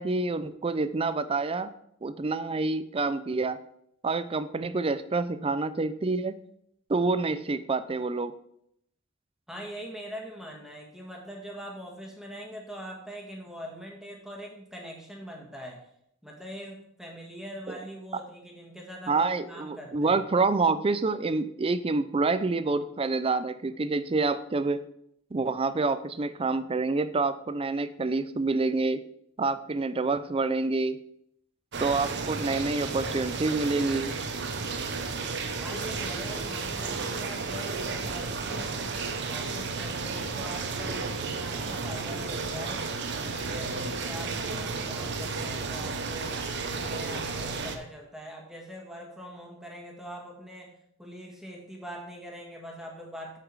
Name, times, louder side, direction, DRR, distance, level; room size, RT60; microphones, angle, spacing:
voice 1, 0.0-1.7 2.0-3.6 4.0-6.3 6.9-8.3 19.1-24.8 25.3-29.0 29.4-31.0 31.8-34.1, right 3 dB, 25° right, 13 dB, 0.4 m, -27 dB
voice 2, 9.5-15.8 16.2-20.2 35.6-39.0 39.3-42.9 43.2-46.4 46.6-53.4, equal, ahead, 0 dB, 1.6 m, -42 dB
sound 1, 31.7-47.8, right 4 dB, 55° right, 0.9 m, -33 dB
7.9 x 5.9 x 4.8 m, 0.72 s
head